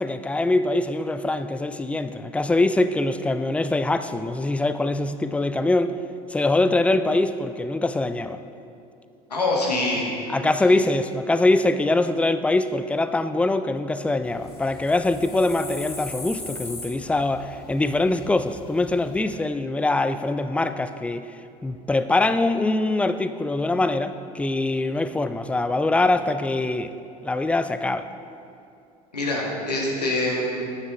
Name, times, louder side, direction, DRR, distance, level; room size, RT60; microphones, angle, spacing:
voice 1, 0.0-6.0 6.3-8.4 10.3-21.3 21.6-26.9 27.2-28.1, left 2 dB, 5° left, 11 dB, 0.4 m, -23 dB
voice 2, 9.3-10.1 29.1-30.6, left 2 dB, 85° left, -3 dB, 1.7 m, -24 dB
sound 1, 14.2-19.2, left 2 dB, 30° left, 2.3 m, -40 dB
9.2 x 9.1 x 4.2 m, 2.6 s
figure-of-eight pair, 70°, 20 cm